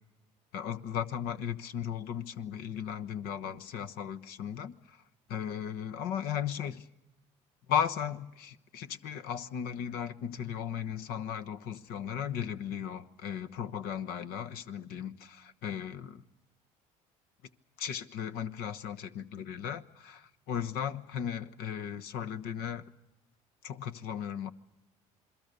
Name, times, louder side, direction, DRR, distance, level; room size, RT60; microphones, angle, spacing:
voice 1, 0.5-4.7 5.3-6.8 7.7-15.4 15.6-15.9 17.8-20.2 20.5-22.8 23.6-24.5, left 8 dB, 70° left, 1.1 m, -36 dB
27.5 x 21.5 x 6.7 m
supercardioid pair, 75°, 16 cm